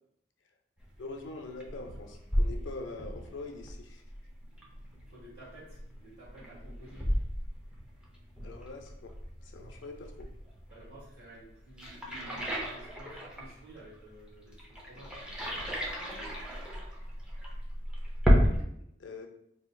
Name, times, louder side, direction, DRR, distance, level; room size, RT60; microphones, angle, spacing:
sound 1, 0.8-18.6, equal, 5° right, 0.6 m, -33 dB
voice 1, 1.0-4.0 8.4-9.1 9.4-10.3 18.8-19.3, left 3 dB, 80° left, 4 dB, 0.5 m, -43 dB
voice 2, 5.1-7.1 10.7-16.7, right 1 dB, 70° right, -11 dB, 1.4 m, -53 dB
4.3 x 2.7 x 2.3 m, 0.73 s
head